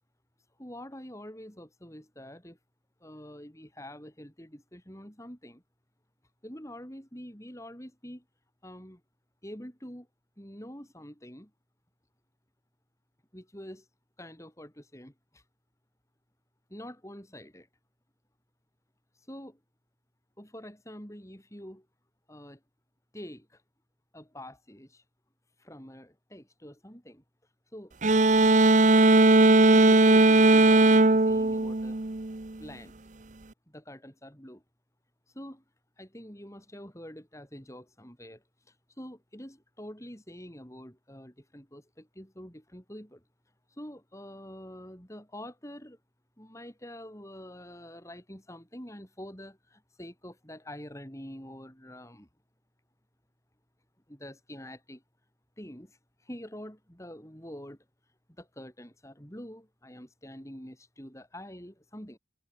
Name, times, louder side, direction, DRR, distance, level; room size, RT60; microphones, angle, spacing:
voice 1, 0.6-2.6 3.0-5.6 6.4-8.2 8.6-9.0 9.4-10.1 10.4-11.5 13.3-13.9 14.2-15.4 16.7-17.7 19.3-19.6 20.4-21.9 22.3-22.6 23.1-23.6 24.1-25.0 25.6-27.2 27.7-28.0 29.7-32.0 32.6-32.9 33.7-34.6 35.3-35.6 36.0-38.4 39.0-43.2 43.8-46.0 46.4-52.3 54.1-55.0 55.6-56.0 56.2-57.8 58.4-62.2, equal, 15° left, 7.1 m, -46 dB
sound 1, 28.0-32.5, right 2 dB, 40° right, 0.9 m, -19 dB
head